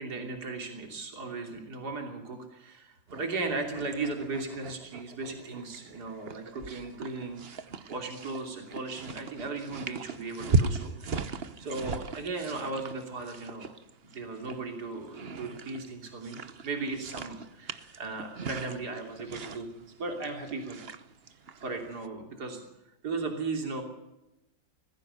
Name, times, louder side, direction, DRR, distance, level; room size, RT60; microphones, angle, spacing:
voice 1, 0.0-7.6 7.9-10.9 11.6-13.7 14.1-20.8 21.6-22.6 23.0-23.8, right 3 dB, 60° right, 3 dB, 3.6 m, -36 dB
sound 1, 3.1-22.1, right 4 dB, 40° right, 1.0 m, -37 dB
21.0 x 15.0 x 8.7 m, 0.92 s
omnidirectional pair, 2.0 m